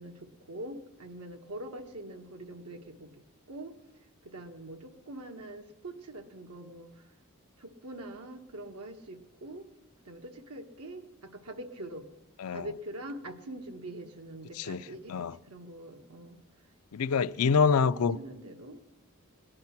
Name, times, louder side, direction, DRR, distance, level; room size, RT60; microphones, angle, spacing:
voice 1, 0.0-3.7 4.2-7.0 7.6-9.7 10.0-12.1 12.5-16.4 17.4-18.8, right 1 dB, 90° right, 1.5 m, -44 dB
voice 2, 16.9-18.2, left 5 dB, 80° left, 0.4 m, -26 dB
18.5 x 10.5 x 5.9 m
head